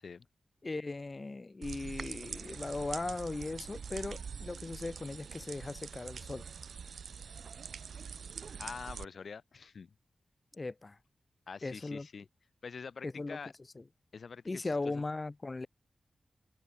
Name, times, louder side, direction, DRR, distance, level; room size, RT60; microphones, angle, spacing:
voice 1, 0.6-6.5 10.5-11.0 11.6-12.1 13.0-13.4 13.8-13.9 14.5-15.7, left 3 dB, 30° left, 2.3 m, -38 dB
sound 1, 1.6-9.1, right 6 dB, 80° right, 1.6 m, -44 dB
voice 2, 8.6-9.9 11.5-12.3 12.6-13.5 14.1-14.4 14.8-15.0, left 5 dB, 60° left, 1.8 m, -45 dB
wide cardioid pair, 145°, 0 cm